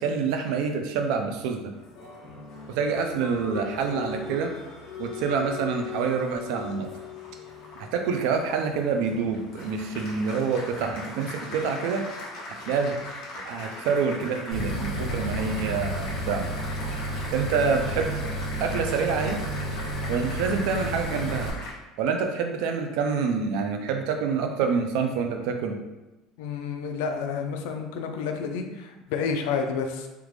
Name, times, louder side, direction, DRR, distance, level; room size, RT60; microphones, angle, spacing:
voice 1, 0.0-1.7 2.7-4.5 5.0-6.9 7.8-12.1 12.7-13.0 13.4-16.5 17.3-18.3 18.6-19.4 20.1-21.6 22.0-25.8, right 5 dB, 70° right, 4 dB, 0.5 m, -27 dB
Applause, 1.7-21.7, left 2 dB, 60° left, 1.0 m, -40 dB
sound 1, 14.5-21.5, right 1 dB, 10° left, 1.4 m, -31 dB
voice 2, 26.4-30.1, left 5 dB, 85° left, 5 dB, 0.4 m, -30 dB
3.4 x 2.4 x 3.1 m, 1.0 s
cardioid pair, 155°, 0 cm